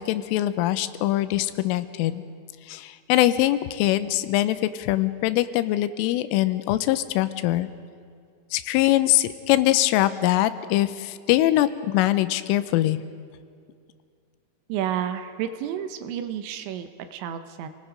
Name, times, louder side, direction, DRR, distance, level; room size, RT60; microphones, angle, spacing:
voice 1, 0.0-2.2 2.7-7.7 8.5-13.0, left 14 dB, 85° left, 13 dB, 3.3 m, -23 dB
voice 2, 14.7-17.7, right 9 dB, 80° right, 9 dB, 3.0 m, -31 dB
28.5 x 19.0 x 5.1 m, 2.2 s
omnidirectional pair, 5.7 m